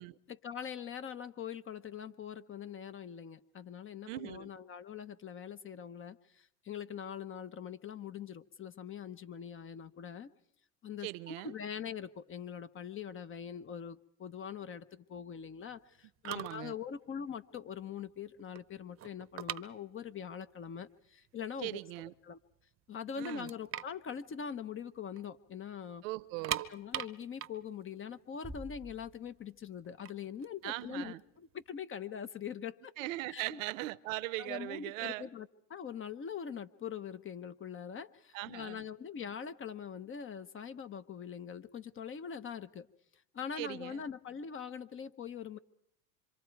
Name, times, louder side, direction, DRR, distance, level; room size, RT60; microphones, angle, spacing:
voice 1, 0.3-10.3 10.8-21.8 22.2-22.4 22.9-26.0 26.7-32.9 33.3-33.6 34.4-42.9 43.3-45.6, left 7 dB, 30° left, 1.0 m, -43 dB
voice 2, 4.1-4.5 11.0-11.5 16.3-16.8 21.6-22.1 23.2-23.5 26.0-26.6 30.6-31.2 33.0-35.3 38.3-38.8 43.6-44.0, right 19 dB, 70° right, 0.9 m, -40 dB
sound 1, 16.0-16.1 16.2-16.7 17.0-17.2 17.7-17.8 18.1-20.3 20.6-20.7 21.4-21.5 21.8-22.5 22.9-23.0 23.2-25.2 25.5-25.6 26.2-29.1 29.8-31.6, right 11 dB, 35° right, 0.9 m, -41 dB
Bass drum, 28.4-29.9, right 1 dB, 5° right, 0.8 m, -49 dB
26.5 x 25.0 x 4.7 m
hypercardioid pair, 95°, 41 cm